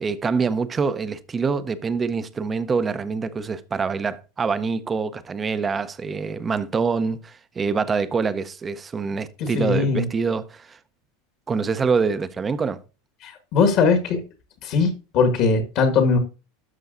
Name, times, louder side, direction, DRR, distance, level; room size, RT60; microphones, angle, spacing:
voice 1, 0.0-10.8 11.5-12.8, right 5 dB, 25° right, 0.7 m, -25 dB
voice 2, 9.5-10.1 13.2-14.2 14.6-16.2, left 4 dB, 55° left, 1.5 m, -20 dB
12.5 x 5.6 x 2.5 m
hypercardioid pair, 95°, 0 cm